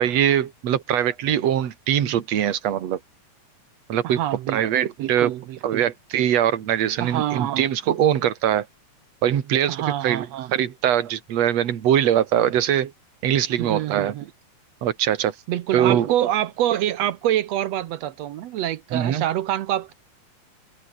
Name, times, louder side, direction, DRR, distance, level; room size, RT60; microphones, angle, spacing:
voice 1, 0.0-3.0 3.9-4.2 4.5-5.3 5.6-8.7 9.2-10.3 10.5-12.9 13.2-14.1 14.8-15.3 15.7-16.1 18.9-19.2, right 10 dB, 55° right, 2.7 m, -22 dB
voice 2, 4.0-4.6 5.0-5.8 7.0-7.7 9.7-10.5 13.6-14.3 15.5-19.9, right 12 dB, 70° right, 1.6 m, -26 dB
omnidirectional pair, 3.9 m